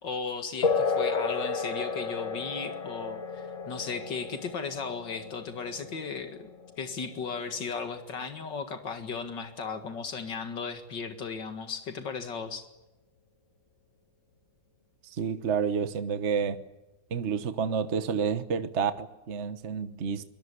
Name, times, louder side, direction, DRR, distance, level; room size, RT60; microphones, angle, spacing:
voice 1, 0.0-6.5 6.8-12.7, left 5 dB, 80° left, 2.6 m, -36 dB
sound 1, 0.6-8.6, left 4 dB, 50° left, 1.6 m, -33 dB
voice 2, 15.0-16.6 17.1-20.2, right 6 dB, 45° right, 1.3 m, -29 dB
24.5 x 21.0 x 9.9 m
omnidirectional pair, 1.9 m